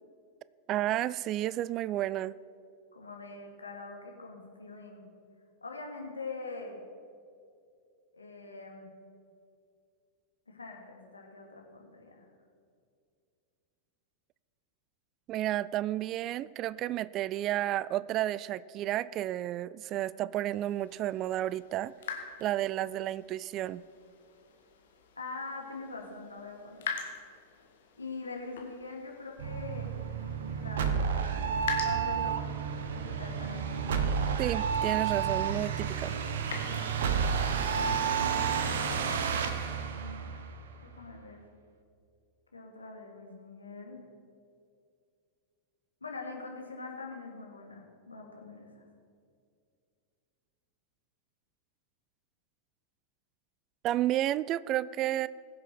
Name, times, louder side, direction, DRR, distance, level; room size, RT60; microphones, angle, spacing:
voice 1, 0.7-2.4 15.3-21.9 22.4-23.8 34.4-36.2 53.8-55.3, right 13 dB, 35° right, 19 dB, 0.3 m, -31 dB
voice 2, 2.9-5.1 5.6-6.8 8.1-8.9 10.5-12.3 25.2-26.9 28.0-29.9 30.5-32.5 32.9-33.8 37.7-38.8 39.6-40.3 40.8-41.4 42.5-44.0 46.0-48.8, left 3 dB, 80° left, 1 dB, 2.1 m, -43 dB
sound 1, 20.5-38.4, left 6 dB, 60° left, 1.7 m, -45 dB
sound 2, 29.4-40.9, right 7 dB, 60° right, 1.0 m, -31 dB
21.5 x 7.5 x 4.3 m, 2.4 s
figure-of-eight pair, 90°, 0 cm